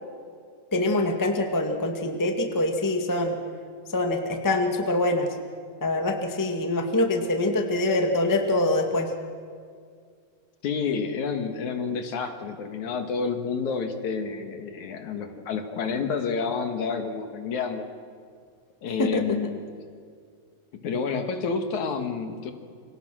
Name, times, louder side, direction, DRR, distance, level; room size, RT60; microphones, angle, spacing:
voice 1, 0.7-3.4 3.9-5.3 5.8-9.1 19.0-19.4, left 2 dB, 10° left, 4 dB, 1.0 m, -24 dB
voice 2, 10.6-17.9 18.8-19.6 20.8-22.5, left 5 dB, 65° left, 6 dB, 2.8 m, -29 dB
29.0 x 24.5 x 6.2 m, 2.2 s
omnidirectional pair, 4.0 m